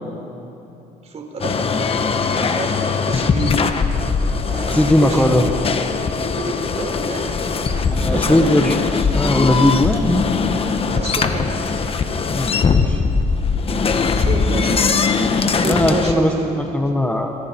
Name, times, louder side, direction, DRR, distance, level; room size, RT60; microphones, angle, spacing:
voice 1, 1.0-3.7 4.4-5.6 6.4-9.1 10.8-11.9 14.1-15.1 15.6-16.6, right 3 dB, 40° right, 3 dB, 4.0 m, -29 dB
sound 1, 1.4-16.1, left 5 dB, 35° left, 1.3 m, -20 dB
voice 2, 4.7-5.5 7.9-8.8 9.1-10.2 12.3-13.0 15.7-16.3 16.7-17.3, left 1 dB, 10° left, 3 dB, 1.5 m, -18 dB
29.0 x 26.0 x 4.7 m, 2.9 s
cardioid pair, 110°, 17 cm